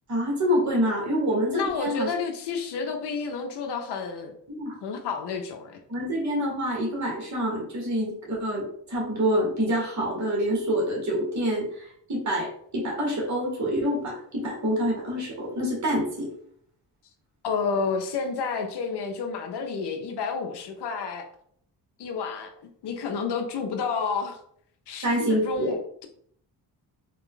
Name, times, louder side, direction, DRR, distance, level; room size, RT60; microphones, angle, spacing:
voice 1, 0.1-2.1 4.5-4.7 5.9-16.3 25.0-25.7, equal, 40° right, -2 dB, 1.6 m, -27 dB
voice 2, 1.5-4.3 4.8-5.8 17.4-21.3 22.0-24.4 24.9-26.1, left 5 dB, 70° left, 4 dB, 0.7 m, -30 dB
4.0 x 2.3 x 3.7 m, 0.65 s
cardioid pair, 80°, 41 cm